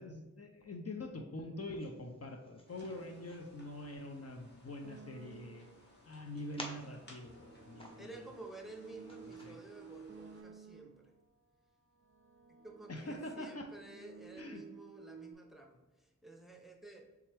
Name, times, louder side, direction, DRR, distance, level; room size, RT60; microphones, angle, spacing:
voice 1, 0.0-5.7 6.1-8.3 9.2-9.6 12.9-13.7 14.4-14.6, left 1 dB, 50° left, 3 dB, 0.6 m, -45 dB
sound 1, 1.7-9.5, equal, 15° left, 1.0 m, -55 dB
sound 2, 2.7-10.4, left 1 dB, 35° left, 1.4 m, -62 dB
sound 3, 4.8-5.9 6.7-11.2 11.9-15.3, right 6 dB, 45° right, 0.4 m, -55 dB
voice 2, 8.0-11.1 12.6-17.0, right 2 dB, ahead, 2 dB, 0.7 m, -52 dB
4.3 x 3.5 x 3.3 m, 1.2 s
wide cardioid pair, 60°, 32 cm